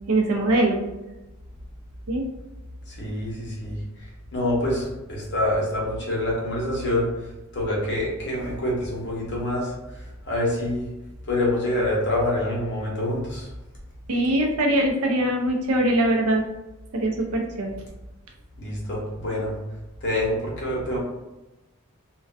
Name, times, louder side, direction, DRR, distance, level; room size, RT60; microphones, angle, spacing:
voice 1, 0.1-0.8 2.1-2.2 14.1-16.4 16.9-17.7, right 1 dB, 80° right, 2 dB, 0.5 m, -22 dB
voice 2, 2.9-3.8 4.3-7.1 7.5-10.9 11.3-13.5 18.6-19.5 20.0-21.0, left 1 dB, 50° left, -4 dB, 0.8 m, -26 dB
2.4 x 2.2 x 2.4 m, 1.0 s
head